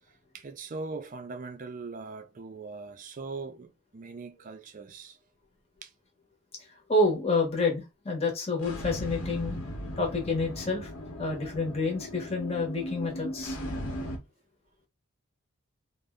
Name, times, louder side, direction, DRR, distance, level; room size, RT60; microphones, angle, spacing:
voice 1, 0.3-5.2 5.8-5.9 14.0-14.1, right 3 dB, 40° right, 0.4 m, -41 dB
voice 2, 6.9-9.6 10.0-10.9 11.2-13.6, left 2 dB, 30° left, 0.8 m, -28 dB
sound 1, 8.6-14.2, equal, 75° left, 0.9 m, -37 dB
2.6 x 2.1 x 3.4 m
head